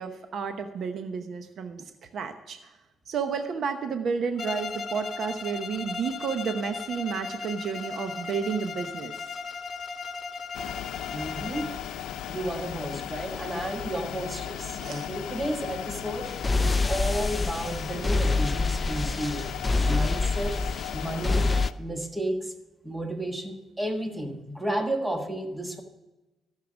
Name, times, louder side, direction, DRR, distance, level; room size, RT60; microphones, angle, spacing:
voice 1, 0.0-2.6 3.1-9.1 14.8-15.1, right 6 dB, 60° right, 8 dB, 0.9 m, -31 dB
Bowed string instrument, 4.4-11.9, left 4 dB, 50° left, 1.0 m, -37 dB
sound 1, 10.5-21.7, left 10 dB, 80° left, 0.6 m, -36 dB
voice 2, 11.1-11.7 12.3-16.3 16.6-19.6 19.9-20.5 20.9-21.4 21.8-22.5 22.8-25.8, right 1 dB, 10° right, 5 dB, 1.4 m, -32 dB
sound 2, 16.3-21.7, left 3 dB, 20° left, 0.4 m, -26 dB
14.0 x 6.6 x 6.2 m, 1.1 s
cardioid pair, 90°, 0 cm